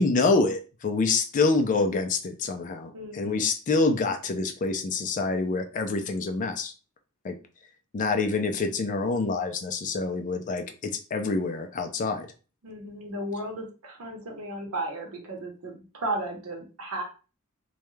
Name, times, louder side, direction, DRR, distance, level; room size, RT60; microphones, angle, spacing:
voice 1, 0.0-6.7 7.2-7.4 7.9-12.3, left 3 dB, 35° left, 6 dB, 0.3 m, -26 dB
voice 2, 2.9-3.4 12.6-17.0, right 1 dB, 80° right, 1 dB, 0.8 m, -34 dB
2.3 x 2.1 x 3.0 m, 0.35 s
head